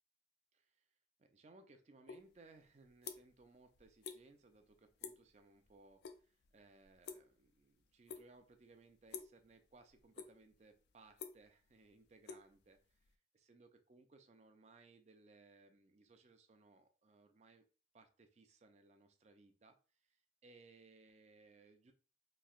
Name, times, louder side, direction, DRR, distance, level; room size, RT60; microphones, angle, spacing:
voice 1, 0.5-0.8 1.2-12.8 13.3-17.6 17.9-19.8 20.4-21.9, right 3 dB, 35° right, 7 dB, 0.4 m, -64 dB
sound 1, 2.1-2.2 2.6-3.5 3.7-4.2 4.5-4.7 5.0-5.3 5.6-6.2 6.4-7.6 8.1-8.5 9.1-9.4 9.9-10.5 10.9-13.1, left 6 dB, 65° left, 0.3 m, -50 dB
3.1 x 2.7 x 2.4 m, 0.37 s
head